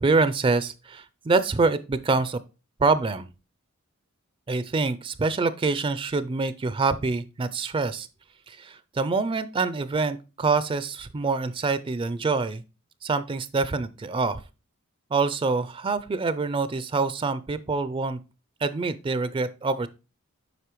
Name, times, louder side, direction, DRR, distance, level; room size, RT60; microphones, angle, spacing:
voice 1, 0.0-2.4 2.8-3.3 4.5-8.1 8.5-12.6 13.0-14.4 15.1-18.2 18.6-19.9, right 4 dB, 25° right, 14 dB, 0.4 m, -25 dB
8.1 x 5.3 x 3.0 m, 0.30 s
head